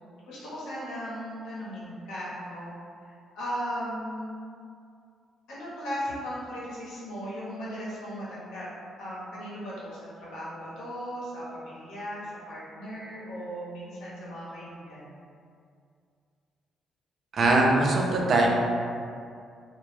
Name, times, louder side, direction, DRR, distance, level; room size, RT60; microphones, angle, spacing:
voice 1, 0.3-2.7 3.0-4.3 5.5-8.6 9.0-15.2, equal, 85° left, -8 dB, 0.8 m, -37 dB
voice 2, 17.3-18.5, right 2 dB, 55° right, -1 dB, 0.4 m, -21 dB
2.0 x 2.0 x 3.1 m, 2.3 s
cardioid pair, 90°, 0 cm